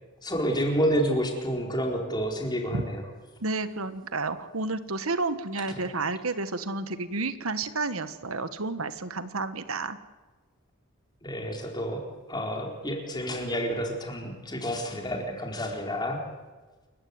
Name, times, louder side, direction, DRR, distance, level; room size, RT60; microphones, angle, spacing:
voice 1, 0.2-3.1 5.7-5.9 11.2-16.2, equal, 20° left, 2 dB, 4.3 m, -29 dB
voice 2, 3.4-10.0, right 3 dB, 85° right, 11 dB, 1.5 m, -31 dB
28.5 x 15.5 x 9.6 m, 1.3 s
head